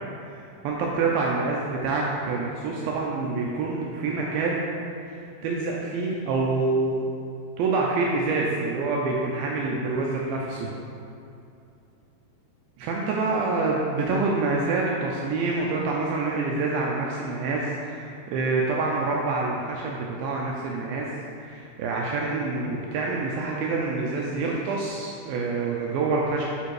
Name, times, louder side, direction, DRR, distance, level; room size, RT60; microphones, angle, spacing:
voice 1, 0.3-4.7 5.1-7.1 7.6-10.7 12.8-21.1 21.4-26.4, right 3 dB, 80° right, -2 dB, 2.2 m, -27 dB
9.4 x 3.5 x 4.7 m, 2.6 s
omnidirectional pair, 4.7 m